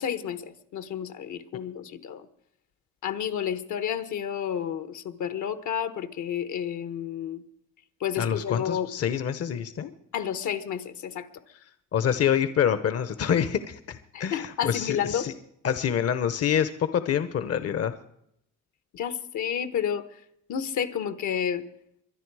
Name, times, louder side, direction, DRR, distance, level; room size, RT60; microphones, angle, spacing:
voice 1, 0.0-2.3 3.0-7.4 8.0-8.9 10.1-11.3 14.1-15.3 18.9-20.2 20.5-21.6, left 9 dB, 75° left, 12 dB, 1.2 m, -30 dB
voice 2, 8.2-9.9 11.9-15.3 15.6-17.9, left 8 dB, 55° left, 12 dB, 0.9 m, -26 dB
23.0 x 10.5 x 4.8 m, 0.74 s
cardioid pair, 90°, 30 cm